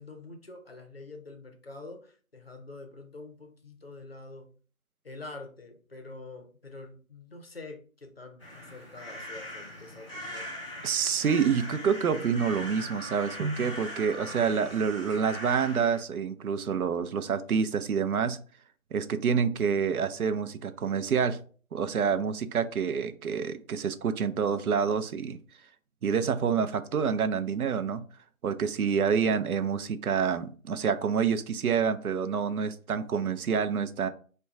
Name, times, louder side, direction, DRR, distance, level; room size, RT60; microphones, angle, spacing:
voice 1, 0.0-4.5 5.0-10.5, left 2 dB, 45° left, 4 dB, 0.6 m, -46 dB
sound 1, 8.4-16.0, equal, 20° left, 0.9 m, -41 dB
voice 2, 10.8-18.4 18.9-21.4 21.7-25.4 26.0-28.0 28.4-34.1, right 6 dB, 85° right, 11 dB, 0.5 m, -27 dB
4.3 x 2.2 x 2.3 m, 0.41 s
figure-of-eight pair, 165°, 43 cm